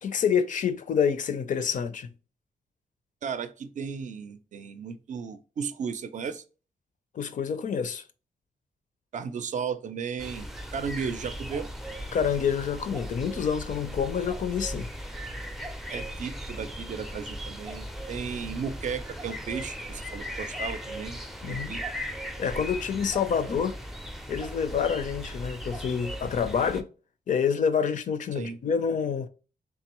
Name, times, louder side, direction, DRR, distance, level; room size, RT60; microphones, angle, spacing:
voice 1, 0.0-2.1 7.1-8.0 12.1-14.9 21.4-21.7 22.4-23.7 24.3-26.9 27.3-29.3, left 7 dB, 60° left, 0.5 m, -27 dB
voice 2, 3.2-6.4 9.1-11.7 15.9-21.2 21.5-21.8 28.3-28.6, right 6 dB, 55° right, 0.5 m, -35 dB
sound 1, 10.2-26.8, equal, ahead, 0.4 m, -38 dB
3.6 x 3.4 x 2.9 m
cardioid pair, 110°, 15 cm